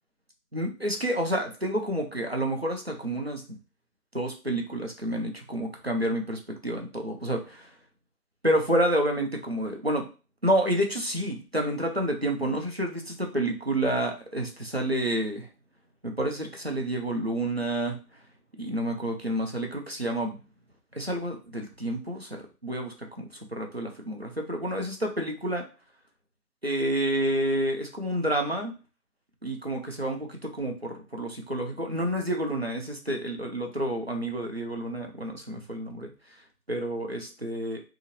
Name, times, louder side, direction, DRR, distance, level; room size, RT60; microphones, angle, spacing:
voice 1, 0.5-3.4 4.1-7.7 8.4-10.1 10.4-15.5 16.0-18.0 18.6-20.4 21.0-25.6 26.6-28.7 29.4-36.1 36.7-37.8, right 1 dB, 45° right, 2 dB, 0.4 m, -29 dB
2.8 x 2.4 x 3.0 m, 0.34 s
figure-of-eight pair, 160°, 48 cm